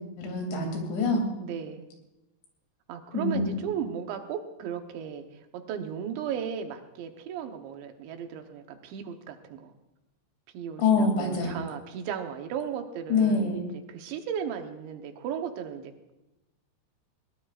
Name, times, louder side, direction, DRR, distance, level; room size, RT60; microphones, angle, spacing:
voice 1, 0.2-1.2 3.1-3.5 10.8-11.6 13.1-13.6, left 4 dB, 85° left, 2 dB, 5.1 m, -25 dB
voice 2, 1.4-1.9 2.9-5.2 5.5-9.7 10.5-16.1, right 8 dB, 85° right, 5 dB, 3.4 m, -36 dB
21.0 x 19.0 x 2.5 m, 0.94 s
omnidirectional pair, 5.1 m